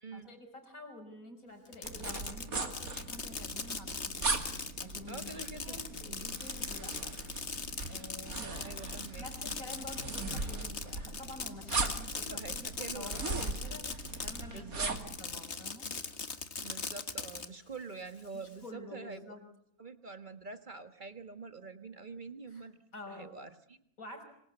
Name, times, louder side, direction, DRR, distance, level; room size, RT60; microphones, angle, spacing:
voice 1, 0.1-7.2 7.9-8.8 9.2-15.9 18.3-19.4 22.5-22.6 22.9-23.4 24.0-24.2, left 2 dB, 65° left, 6 dB, 5.7 m, -49 dB
Fireworks, 1.7-14.6 15.0-17.5, left 4 dB, 45° left, 2.0 m, -40 dB
sound 1, 1.8-15.2, right 3 dB, 70° right, 3.0 m, -39 dB
voice 2, 5.1-5.8 8.6-9.3 11.8-12.0 12.2-13.1 14.5-14.9 16.6-19.3 19.8-22.8 23.1-23.8, right 4 dB, 30° right, 9 dB, 1.7 m, -46 dB
26.0 x 25.0 x 8.1 m, 0.75 s
omnidirectional pair, 1.6 m